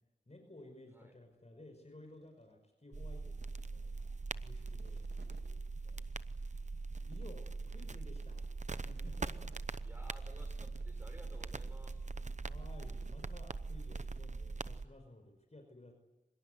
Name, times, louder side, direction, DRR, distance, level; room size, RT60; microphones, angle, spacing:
voice 1, 0.3-4.1 4.4-6.0 7.0-8.4 8.8-9.5 12.4-15.9, left 1 dB, 35° left, 4 dB, 5.4 m, -56 dB
sound 1, 2.0-2.5 2.9-5.5 6.0-6.1 6.6-6.7 7.0-7.9 8.1-8.5 8.8-10.0 10.6-11.0 11.2-11.7 12.1-14.2, right 3 dB, 65° right, 2.2 m, -62 dB
sound 2, 2.9-14.9, right 3 dB, 40° right, 0.8 m, -42 dB
voice 2, 7.4-8.1 9.8-12.0, equal, 10° right, 6 dB, 6.7 m, -57 dB
24.5 x 21.5 x 9.5 m, 1.2 s
wide cardioid pair, 70°, 19 cm